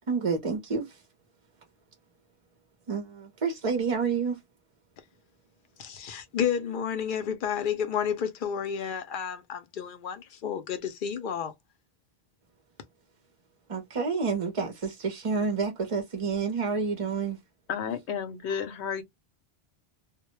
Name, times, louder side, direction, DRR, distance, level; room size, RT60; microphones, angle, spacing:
voice 1, 0.1-1.0 2.9-4.4 13.7-17.4, right 5 dB, 40° right, 0.5 m, -29 dB
voice 2, 5.8-11.5, left 8 dB, 60° left, 0.6 m, -31 dB
voice 3, 17.7-19.0, left 7 dB, 90° left, 0.9 m, -32 dB
2.2 x 2.0 x 2.9 m
omnidirectional pair, 1.1 m